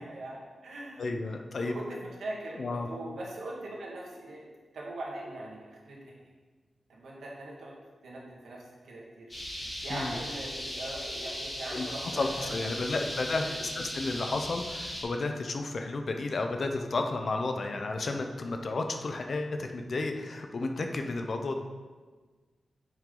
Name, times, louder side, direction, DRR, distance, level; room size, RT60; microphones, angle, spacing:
voice 1, 0.0-1.1 1.6-4.4 4.7-6.3 6.9-7.7 8.0-9.3 9.8-13.6, right 1 dB, 85° right, -3 dB, 1.8 m, -41 dB
voice 2, 1.0-1.7 2.5-2.9 9.9-10.1 11.7-11.9 12.1-21.6, left 3 dB, 45° left, 4 dB, 0.7 m, -32 dB
sound 1, 9.3-15.0, equal, 20° left, 2.4 m, -38 dB
9.0 x 6.1 x 3.8 m, 1.4 s
wide cardioid pair, 160°, 0 cm